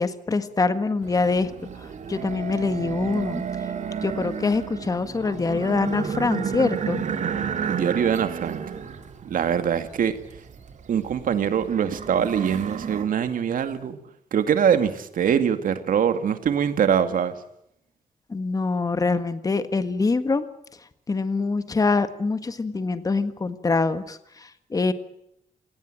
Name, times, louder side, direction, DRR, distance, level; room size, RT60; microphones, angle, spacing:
voice 1, 0.0-3.4 4.0-7.0 18.3-20.5 21.1-24.9, left 3 dB, 25° left, 11 dB, 1.7 m, -24 dB
sound 1, 1.0-13.1, right 7 dB, 60° right, 2.7 m, -32 dB
voice 2, 7.7-8.6 9.2-10.1 10.9-14.0 14.3-17.3, right 8 dB, 85° right, 9 dB, 2.2 m, -23 dB
27.5 x 18.5 x 9.0 m, 0.77 s
wide cardioid pair, 155°, 14 cm